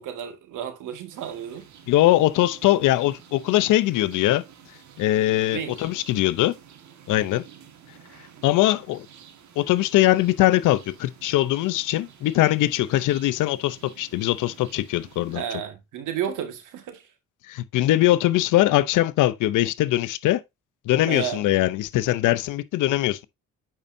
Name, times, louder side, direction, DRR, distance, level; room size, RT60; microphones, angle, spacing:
voice 1, 0.0-1.7 5.5-5.8 15.3-17.0 21.1-21.4, right 9 dB, 85° right, 1.9 m, -32 dB
sound 1, 1.1-15.4, right 8 dB, 65° right, 1.7 m, -50 dB
voice 2, 1.9-4.4 5.0-6.5 7.1-7.4 8.4-9.1 9.6-15.4 17.5-20.4 20.9-23.2, left 15 dB, 85° left, 0.7 m, -21 dB
8.9 x 5.6 x 2.7 m
cardioid pair, 90°, 30 cm